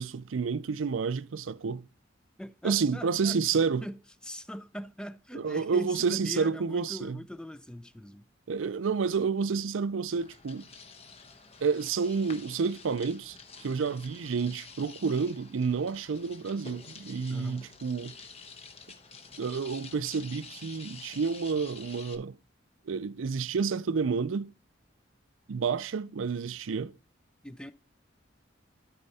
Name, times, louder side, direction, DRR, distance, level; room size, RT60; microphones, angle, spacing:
voice 1, 0.0-1.8 2.6-3.8 5.3-7.2 8.5-10.6 11.6-18.1 19.4-22.4 22.9-24.5 25.5-26.9, right 5 dB, 85° right, 0.5 m, -30 dB
voice 2, 2.4-3.4 3.8-8.3 17.3-17.7 27.4-27.7, equal, 5° left, 0.4 m, -41 dB
sound 1, 10.1-22.1, left 5 dB, 30° left, 0.9 m, -49 dB
12.5 x 4.3 x 4.1 m
head